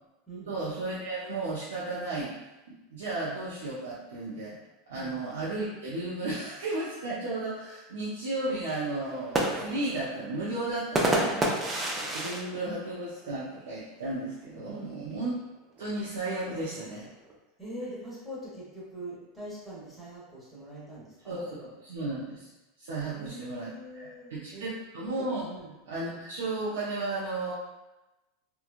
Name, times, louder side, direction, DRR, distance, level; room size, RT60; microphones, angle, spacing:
voice 1, 0.5-2.3 2.7-4.6 4.9-11.3 12.1-15.3 15.8-17.1 21.3-22.5 22.8-25.5 25.9-27.5, right 2 dB, 90° right, -8 dB, 0.6 m, -34 dB
sound 1, 9.0-13.7 14.1-14.2 14.5-14.9 15.8-17.3, right 1 dB, 20° right, 0.5 m, -31 dB
voice 2, 11.1-11.7 14.6-15.0 17.6-21.4 23.1-24.7 25.4-25.7, right 1 dB, 10° left, -8 dB, 1.0 m, -43 dB
3.0 x 2.2 x 2.4 m, 1.0 s
supercardioid pair, 120°, 0 cm